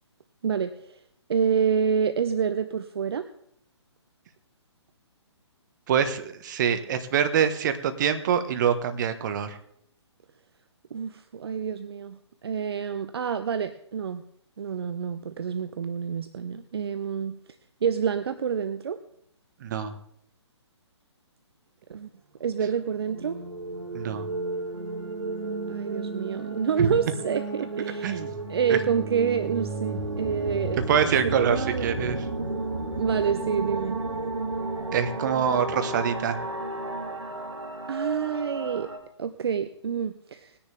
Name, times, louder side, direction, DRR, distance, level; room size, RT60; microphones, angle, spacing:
voice 1, 0.4-1.0 1.3-3.3 10.9-14.2 14.6-17.4 17.8-19.0 21.9-22.1 22.4-23.4 25.7-31.9 32.9-34.0 37.9-38.9 39.2-40.6, right 7 dB, 60° right, 11 dB, 0.7 m, -28 dB
voice 2, 5.9-9.6 19.6-19.9 23.9-24.3 28.0-28.3 28.7-28.8 30.9-32.2 34.9-36.4, right 8 dB, 40° right, 9 dB, 1.2 m, -25 dB
sound 1, 22.9-39.0, right 2 dB, 85° right, 2.4 m, -33 dB
19.5 x 10.0 x 3.5 m, 0.70 s
figure-of-eight pair, 135°, 15 cm